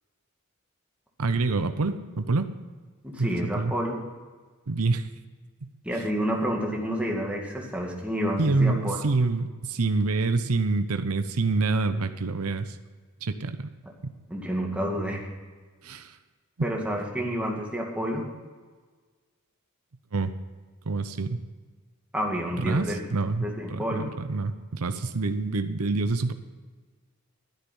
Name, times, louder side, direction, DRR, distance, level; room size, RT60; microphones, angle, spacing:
voice 1, 1.2-2.5 3.2-3.7 4.7-5.1 5.6-5.7 8.4-12.8 13.2-13.7 14.0-14.1 15.8-16.2 20.1-20.3 20.9-21.4 22.6-26.3, right 3 dB, 75° right, 9 dB, 0.8 m, -27 dB
voice 2, 3.0-4.0 5.8-9.0 14.3-15.3 16.6-18.2 22.1-23.0 23.4-24.1, equal, 5° right, -1 dB, 2.2 m, -29 dB
12.0 x 10.5 x 5.5 m, 1.5 s
head